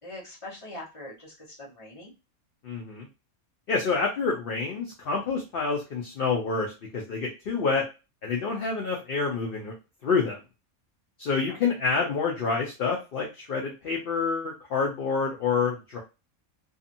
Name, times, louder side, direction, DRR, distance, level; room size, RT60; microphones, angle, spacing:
voice 1, 0.0-2.1 11.5-11.6, left 1 dB, 25° left, -4 dB, 1.0 m, -42 dB
voice 2, 2.6-3.1 3.7-7.9 8.2-9.7 10.0-10.4 11.2-16.0, left 4 dB, 55° left, -1 dB, 0.6 m, -28 dB
2.7 x 2.4 x 2.6 m, 0.28 s
omnidirectional pair, 1.5 m